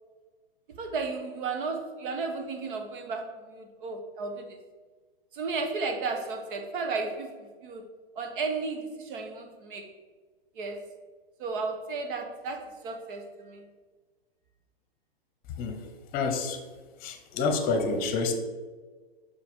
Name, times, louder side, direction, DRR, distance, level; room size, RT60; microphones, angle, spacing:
voice 1, 0.7-4.6 5.3-7.8 8.1-9.9 10.5-10.9 11.4-13.7, right 4 dB, 55° right, 4 dB, 1.3 m, -34 dB
voice 2, 15.6-15.9 16.1-16.6 17.0-18.4, left 4 dB, 30° left, 6 dB, 0.9 m, -28 dB
6.4 x 4.7 x 3.7 m, 1.4 s
hypercardioid pair, 120°, 30 cm